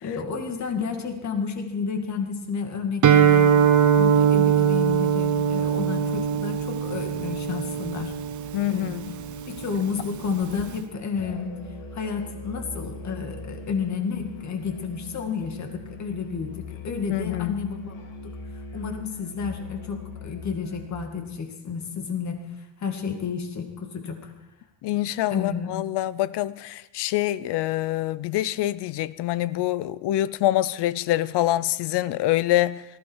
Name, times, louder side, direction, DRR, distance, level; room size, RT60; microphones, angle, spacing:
voice 1, 0.0-3.6 3.9-8.1 8.7-9.0 9.5-11.6 11.9-17.9 18.2-18.4 18.7-24.3 24.9-25.0 25.3-25.7, left 6 dB, 35° left, 2.3 m, -31 dB
Guitar, 3.0-10.8, right 8 dB, 40° right, 0.9 m, -22 dB
voice 2, 8.5-9.0 17.1-17.7 24.8-32.8, left 15 dB, 55° left, 0.7 m, -25 dB
Musical instrument, 11.1-21.0, left 3 dB, 75° left, 3.2 m, -40 dB
18.5 x 15.5 x 4.8 m
cardioid pair, 150°, 49 cm